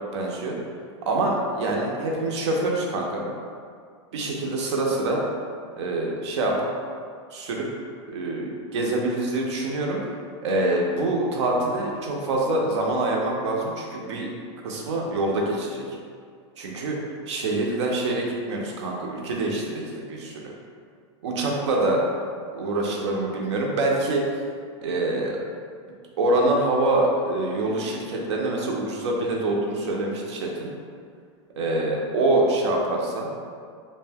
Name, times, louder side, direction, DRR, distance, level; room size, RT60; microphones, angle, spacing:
voice 1, 0.1-0.6 1.1-3.3 4.1-5.2 5.8-6.7 7.3-7.7 8.1-10.0 10.4-14.3 14.6-15.9 16.6-17.0 17.3-20.4 21.2-22.0 22.5-24.2 24.8-25.4 26.2-30.7 31.6-33.3, right 2 dB, 70° right, -1 dB, 0.6 m, -25 dB
2.5 x 2.1 x 3.4 m, 2.2 s
supercardioid pair, 175°, 15 cm